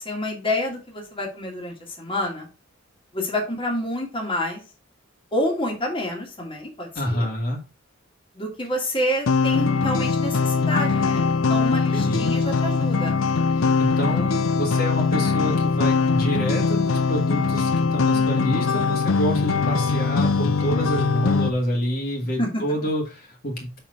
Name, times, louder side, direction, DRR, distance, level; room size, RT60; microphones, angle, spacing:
voice 1, 0.0-2.5 3.1-4.6 5.3-7.3 8.3-13.2 18.1-18.6 22.4-22.6, left 1 dB, 25° left, 0 dB, 1.9 m, -28 dB
voice 2, 7.0-7.6 11.9-12.3 13.6-23.8, equal, 50° left, -1 dB, 1.8 m, -28 dB
sound 1, 9.3-21.5, left 4 dB, 90° left, 0.6 m, -21 dB
5.9 x 4.5 x 4.9 m, 0.32 s
head